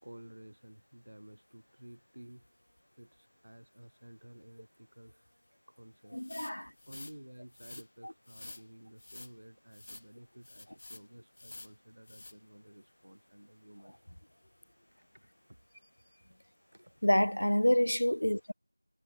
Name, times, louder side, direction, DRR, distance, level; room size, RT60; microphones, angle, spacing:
voice 1, 0.0-2.5 3.0-5.2 5.7-6.4 6.9-14.0 14.9-15.6 16.7-16.9 18.5-18.6, right 1 dB, 40° right, 6.3 m, -53 dB
voice 2, 6.1-6.7 8.0-8.1 17.0-18.5, left 1 dB, 45° left, 0.8 m, -28 dB
sound 1, 6.2-7.2 7.5-7.9 8.3-8.6 9.0-9.3 9.7-10.1 10.4-11.0 11.4-11.7 12.1-12.3, left 2 dB, 15° left, 1.0 m, -49 dB
figure-of-eight pair, 180°, 0 cm